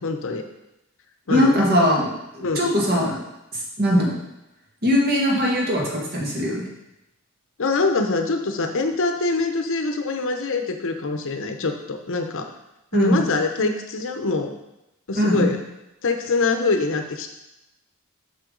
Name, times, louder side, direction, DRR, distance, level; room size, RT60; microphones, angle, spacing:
voice 1, 0.0-0.4 1.3-1.6 2.4-2.6 7.6-12.5 12.9-14.5 15.1-15.6 16.0-17.3, left 3 dB, 65° left, 5 dB, 0.7 m, -24 dB
voice 2, 1.3-2.1 2.3-3.2 3.5-4.1 4.8-6.6 12.9-13.3 15.1-15.5, equal, 45° right, -2 dB, 1.8 m, -20 dB
7.6 x 5.8 x 3.9 m, 0.90 s
head